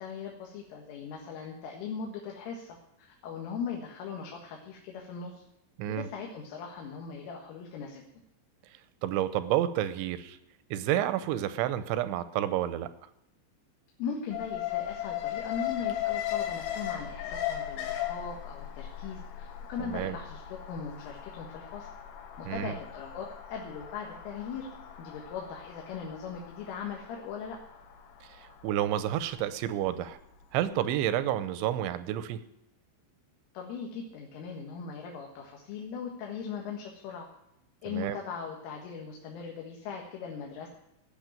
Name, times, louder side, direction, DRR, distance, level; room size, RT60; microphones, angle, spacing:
voice 1, 0.0-5.4 5.9-8.0 14.0-21.9 22.4-24.7 25.0-27.6 33.6-37.3 37.8-40.7, left 6 dB, 85° left, 1 dB, 4.2 m, -39 dB
voice 2, 9.0-10.4 10.7-12.9 19.8-20.2 22.5-22.8 28.3-30.2 30.5-32.4 37.9-38.2, right 12 dB, 80° right, 12 dB, 2.9 m, -30 dB
Alarm, 14.3-30.4 30.7-30.8, left 11 dB, 70° left, 3.1 m, -38 dB
17.0 x 6.5 x 8.9 m, 0.84 s
omnidirectional pair, 5.6 m